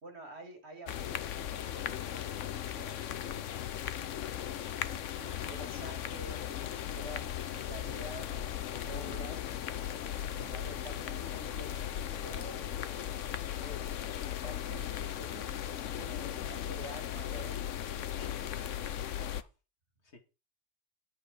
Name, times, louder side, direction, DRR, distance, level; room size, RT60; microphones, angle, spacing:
voice 1, 0.0-3.7 4.9-9.6 10.2-13.3 13.6-13.9 14.2-17.7, right 2 dB, 60° right, 2.8 m, -49 dB
sound 1, 0.9-19.4, left 10 dB, 90° left, 1.1 m, -37 dB
voice 2, 18.2-19.5 20.0-20.2, left 3 dB, 65° left, 2.3 m, -55 dB
10.5 x 8.5 x 5.0 m
omnidirectional pair, 1.2 m